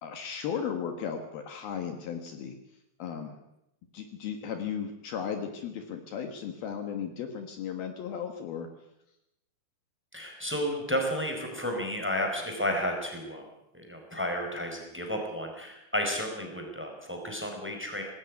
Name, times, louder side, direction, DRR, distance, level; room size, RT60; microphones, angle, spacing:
voice 1, 0.0-2.6 3.0-3.4 3.9-8.7, left 7 dB, 65° left, 6 dB, 3.1 m, -35 dB
voice 2, 10.1-13.4 13.7-18.0, equal, 5° right, 3 dB, 4.2 m, -32 dB
19.5 x 16.5 x 9.5 m, 0.85 s
omnidirectional pair, 5.0 m